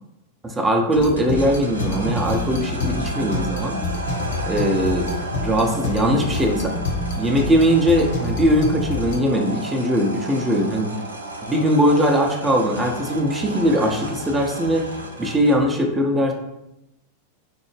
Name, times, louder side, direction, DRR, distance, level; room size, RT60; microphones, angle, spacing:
voice 1, 0.4-3.8 4.5-5.1 5.4-6.8 7.2-10.9 11.4-14.9 15.2-16.3, equal, 15° right, 2 dB, 0.6 m, -20 dB
sound 1, 0.9-15.8, right 1 dB, 75° right, 0.4 m, -33 dB
sound 2, 1.0-9.2, left 2 dB, 55° left, 0.6 m, -27 dB
4.3 x 2.0 x 3.2 m, 0.91 s
figure-of-eight pair, 90°, 0 cm